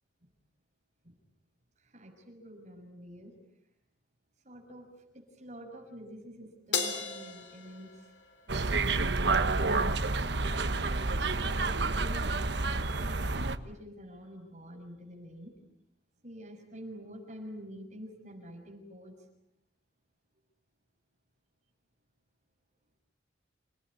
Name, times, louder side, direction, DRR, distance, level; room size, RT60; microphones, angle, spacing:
voice 1, 1.8-3.4 4.4-8.1 10.2-15.5 16.2-19.1, equal, 40° right, 2 dB, 6.7 m, -47 dB
Crash cymbal, 6.7-9.3, left 5 dB, 70° left, 3.7 m, -36 dB
sound 1, 8.5-13.6, right 3 dB, 70° right, 1.3 m, -29 dB
28.5 x 19.0 x 10.0 m, 0.84 s
head